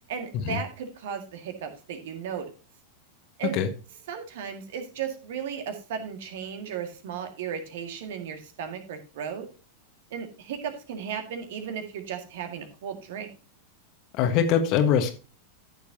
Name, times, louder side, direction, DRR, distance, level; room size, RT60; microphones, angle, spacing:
voice 1, 0.1-2.5 3.4-3.6 4.1-9.5 10.1-13.3, right 7 dB, 55° right, 7 dB, 2.0 m, -35 dB
voice 2, 14.2-15.1, left 8 dB, 40° left, 8 dB, 1.5 m, -22 dB
14.5 x 6.8 x 2.8 m, 0.34 s
figure-of-eight pair, 90°, 0 cm